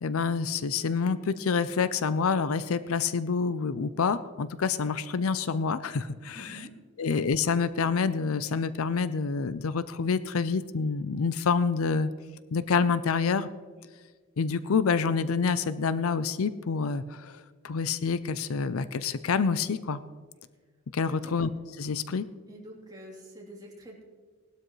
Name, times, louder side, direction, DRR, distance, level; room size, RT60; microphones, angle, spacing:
voice 1, 0.0-6.6 7.0-12.1 12.5-13.5 14.4-20.0 20.9-21.5 21.8-22.2, left 5 dB, 75° left, 14 dB, 0.5 m, -27 dB
voice 2, 6.3-7.1 21.1-21.3 22.5-24.0, right 1 dB, 20° right, -3 dB, 3.2 m, -47 dB
19.0 x 12.5 x 3.2 m, 1.5 s
head